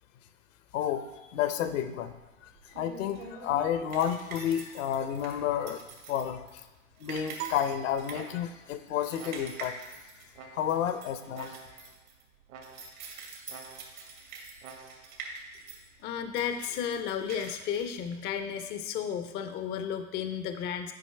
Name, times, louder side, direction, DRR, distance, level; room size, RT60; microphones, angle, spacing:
voice 1, 0.7-2.1 2.4-6.7 7.0-10.1 10.4-11.6, left 9 dB, 65° left, 10 dB, 0.8 m, -31 dB
sound 1, 2.0-18.7, right 4 dB, 85° right, 2.4 m, -46 dB
sound 2, 7.1-7.6 8.1-8.7 9.2-9.8 10.3-10.9 11.3-12.0 12.5-13.1 13.5-14.1 14.6-15.2, right 5 dB, 65° right, 1.2 m, -50 dB
sound 3, 7.4-8.8, right 13 dB, 40° right, 0.6 m, -43 dB
voice 2, 16.0-20.9, left 8 dB, 25° left, 7 dB, 0.4 m, -33 dB
8.9 x 5.3 x 3.2 m, 1.1 s
hypercardioid pair, 105°, 41 cm